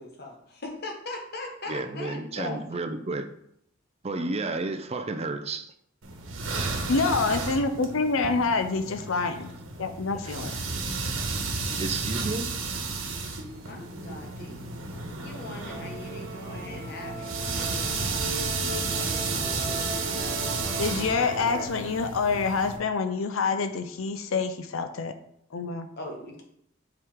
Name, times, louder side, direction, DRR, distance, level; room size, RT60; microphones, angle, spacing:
voice 1, 0.0-2.9 4.1-4.2 13.7-14.6 15.2-19.9 26.0-26.4, left 2 dB, 55° left, 1 dB, 1.4 m, -40 dB
voice 2, 1.7-3.3 4.0-5.7 10.1-10.5 11.0-11.1 11.8-12.5, right 3 dB, 30° right, 8 dB, 0.5 m, -32 dB
sound 1, 6.0-22.8, right 3 dB, 70° right, 1.3 m, -33 dB
voice 3, 6.9-9.5 9.8-10.5 20.8-25.1 25.5-25.9, left 4 dB, 80° left, 9 dB, 0.6 m, -27 dB
Musical instrument, 15.7-21.7, right 2 dB, 55° right, 1.2 m, -37 dB
7.5 x 4.8 x 3.6 m, 0.72 s
head